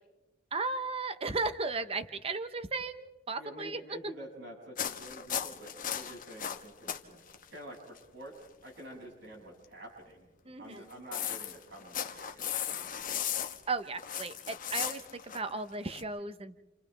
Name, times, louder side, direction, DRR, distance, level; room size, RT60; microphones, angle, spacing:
voice 1, 0.5-3.8 10.5-10.9 13.7-16.6, right 3 dB, 30° right, 10 dB, 0.9 m, -35 dB
voice 2, 3.4-7.2 7.5-10.3 10.6-13.2, right 1 dB, 65° right, -2 dB, 6.9 m, -48 dB
sound 1, 4.8-7.0 7.3-7.5 8.0-8.1 10.7-16.0, left 9 dB, 45° left, 1.2 m, -36 dB
29.5 x 28.5 x 3.4 m, 1.1 s
head